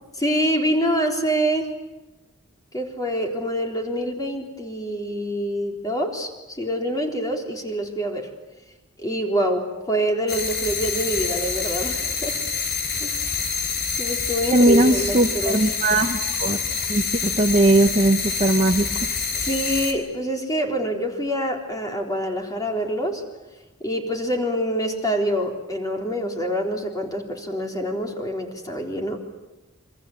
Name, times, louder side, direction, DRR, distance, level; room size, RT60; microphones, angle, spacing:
voice 1, 0.2-1.7 2.7-8.3 9.0-12.3 13.0-13.3 14.0-15.6 19.3-23.2 23.8-29.2, equal, 20° left, 1 dB, 3.8 m, -26 dB
sound 1, 10.3-19.9, left 5 dB, 50° left, 3.7 m, -27 dB
voice 2, 14.5-16.6 16.9-19.1, right 2 dB, 35° right, 2 dB, 1.1 m, -19 dB
28.0 x 24.5 x 7.9 m, 1.1 s
head